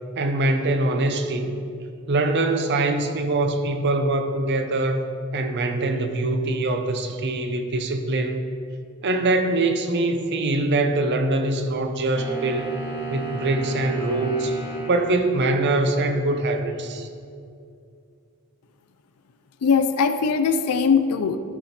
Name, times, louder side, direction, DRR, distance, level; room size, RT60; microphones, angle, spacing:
voice 1, 0.2-1.6 2.1-5.1 5.3-8.4 9.0-12.7 13.1-17.1, right 2 dB, 50° right, 7 dB, 0.6 m, -23 dB
sound 1, 12.2-15.0, right 3 dB, 10° right, 1.3 m, -32 dB
voice 2, 19.6-21.4, left 5 dB, 85° left, 8 dB, 0.4 m, -20 dB
12.0 x 4.2 x 4.3 m, 2.4 s
head